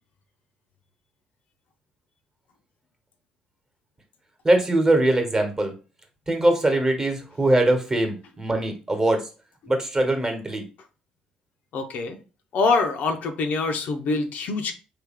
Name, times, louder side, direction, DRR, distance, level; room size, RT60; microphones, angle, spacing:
voice 1, 4.4-5.7 6.3-9.3 9.7-10.6, right 1 dB, 25° right, 5 dB, 1.1 m, -22 dB
voice 2, 11.7-12.2 12.5-14.7, left 3 dB, 65° left, 5 dB, 0.6 m, -24 dB
3.3 x 2.3 x 3.5 m, 0.33 s
supercardioid pair, 65°, 3 cm